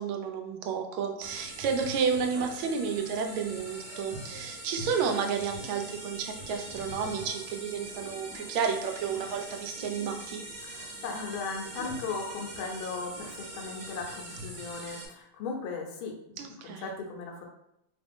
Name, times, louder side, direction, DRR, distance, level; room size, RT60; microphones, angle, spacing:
voice 1, 0.0-10.4 16.4-16.9, right 6 dB, 90° right, 4 dB, 1.4 m, -31 dB
sound 1, 1.2-15.1, right 1 dB, 50° right, 1.0 m, -42 dB
voice 2, 10.6-17.5, left 4 dB, 80° left, 1 dB, 1.5 m, -37 dB
3.6 x 2.4 x 3.5 m, 0.77 s
omnidirectional pair, 2.2 m